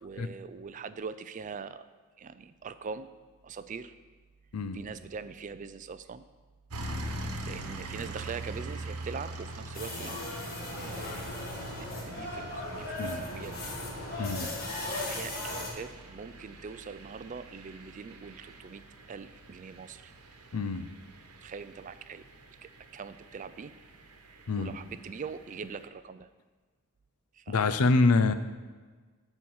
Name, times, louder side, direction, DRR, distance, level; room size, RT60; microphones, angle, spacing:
voice 1, 0.0-1.8 2.2-3.1 3.4-3.9 4.7-6.2 7.4-10.2 10.8-11.4 11.8-13.6 14.9-18.8 19.1-20.1 21.4-22.2 22.6-23.7 24.3-26.3 27.3-27.7, right 5 dB, 35° right, 13 dB, 0.3 m, -42 dB
sound 1, 6.7-25.9, right 2 dB, 90° right, 1.1 m, -44 dB
sound 2, 9.7-15.7, left 1 dB, 45° left, 1.9 m, -37 dB
voice 2, 14.2-14.5 20.5-20.9 24.5-24.7 27.5-28.3, left 3 dB, 80° left, 11 dB, 0.6 m, -26 dB
10.5 x 4.5 x 7.2 m, 1.4 s
head